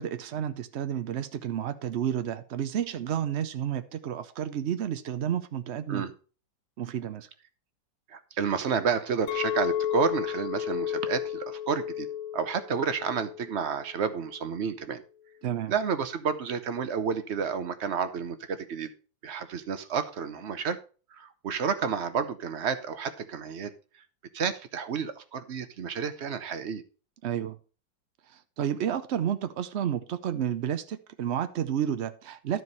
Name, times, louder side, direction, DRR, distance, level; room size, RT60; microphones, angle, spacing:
voice 1, 0.0-6.0 6.8-7.3 15.4-15.7 27.2-27.6 28.6-32.6, right 9 dB, 90° right, 0.5 m, -31 dB
voice 2, 8.1-12.1 12.3-15.0 15.7-18.9 19.2-20.8 21.1-23.7 24.3-26.8, right 6 dB, 50° right, 0.8 m, -30 dB
Chink clink, 9.3-13.6 14.0-14.4, left 10 dB, 70° left, 0.8 m, -33 dB
12.5 x 4.7 x 5.4 m
omnidirectional pair, 2.0 m